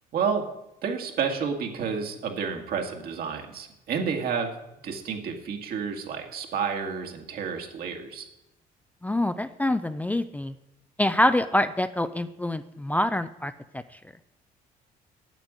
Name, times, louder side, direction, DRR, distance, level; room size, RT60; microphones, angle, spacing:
voice 1, 0.1-0.4 0.8-4.5 4.8-8.2, right 6 dB, 60° right, 3 dB, 2.1 m, -30 dB
voice 2, 9.0-10.5 11.0-13.8, left 1 dB, 10° left, 11 dB, 0.4 m, -25 dB
9.1 x 8.0 x 8.8 m, 0.89 s
cardioid pair, 110°, 17 cm